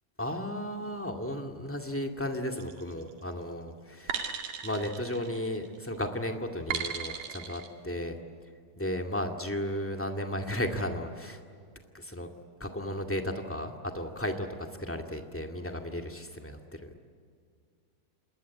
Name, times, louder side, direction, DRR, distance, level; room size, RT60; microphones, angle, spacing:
voice 1, 0.2-4.2 4.6-8.1 8.8-11.4 11.9-12.3 12.6-14.5 14.8-16.9, left 1 dB, 5° left, 4 dB, 1.2 m, -34 dB
sound 1, 2.6-3.0 4.1-5.8 6.7-7.7, right 7 dB, 75° right, 3.7 m, -36 dB
27.0 x 21.5 x 9.5 m, 2.2 s
omnidirectional pair, 3.7 m